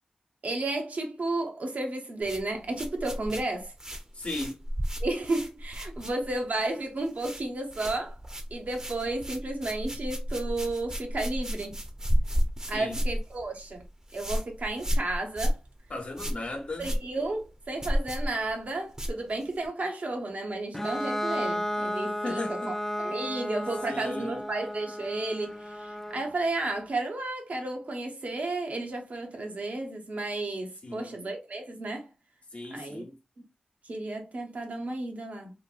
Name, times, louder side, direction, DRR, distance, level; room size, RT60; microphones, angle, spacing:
voice 1, 0.4-3.7 5.0-8.2 8.5-11.8 12.7-13.8 14.1-15.6 16.8-22.6 23.0-32.1 32.7-33.0 33.8-35.5, right 2 dB, 75° right, 0.8 m, -32 dB
sound 1, 2.2-6.6 6.8-7.4 7.7-19.7, equal, 25° right, 0.6 m, -32 dB
voice 2, 4.1-4.6 12.7-13.0 15.9-17.0 22.2-22.8 23.8-24.5 30.8-31.2 32.5-33.2, left 2 dB, 60° left, 0.9 m, -36 dB
Bowed string instrument, 20.7-26.3, equal, 10° left, 0.3 m, -33 dB
2.9 x 2.6 x 2.4 m
wide cardioid pair, 65°, 3 cm